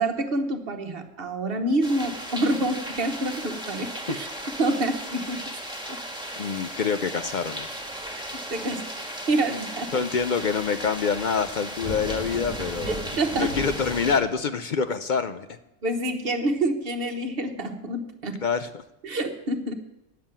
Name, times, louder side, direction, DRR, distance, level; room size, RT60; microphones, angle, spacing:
voice 1, 0.0-4.3 4.6-5.4 8.1-8.2 8.5-8.9 9.3-9.9 12.9-13.6 15.8-18.4 19.0-19.7, right 1 dB, 50° right, 6 dB, 1.3 m, -27 dB
sound 1, 1.8-14.2, right 1 dB, 5° right, 1.6 m, -35 dB
voice 2, 6.4-7.7 9.9-13.0 13.3-15.6 18.4-18.8, left 6 dB, 55° left, 10 dB, 0.5 m, -26 dB
9.6 x 7.3 x 8.7 m, 0.90 s
omnidirectional pair, 1.3 m